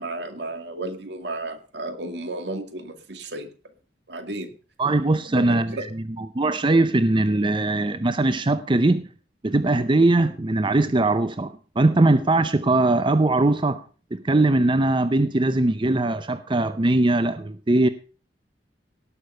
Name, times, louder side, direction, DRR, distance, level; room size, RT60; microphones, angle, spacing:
voice 1, 0.0-3.5 4.1-4.5 5.3-5.8, right 2 dB, 75° right, 2.2 m, -33 dB
voice 2, 4.8-9.1 9.4-13.8 14.1-17.9, right 2 dB, 30° right, 0.6 m, -21 dB
18.0 x 6.7 x 5.5 m
head